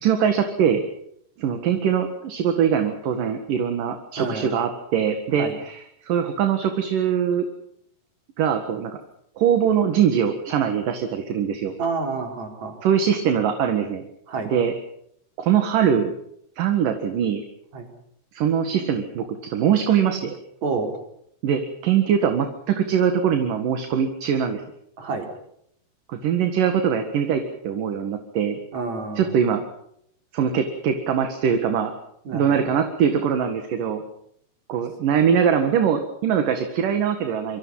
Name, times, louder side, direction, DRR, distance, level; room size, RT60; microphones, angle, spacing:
voice 1, 0.0-0.8 1.4-7.5 8.4-9.0 9.4-11.7 12.8-14.0 14.4-14.7 15.4-16.1 16.6-17.4 18.3-20.3 21.4-24.6 26.1-28.6 29.2-29.6 30.3-31.9 32.3-34.0 34.7-37.6, right 8 dB, 60° right, 6 dB, 3.1 m, -22 dB
voice 2, 4.2-4.5 5.4-5.6 11.8-12.8 14.3-14.5 17.7-17.9 20.6-21.0 25.0-25.3 28.7-29.3 32.3-32.6, right 4 dB, 40° right, 4 dB, 5.4 m, -29 dB
27.5 x 24.5 x 5.6 m, 0.71 s
omnidirectional pair, 4.8 m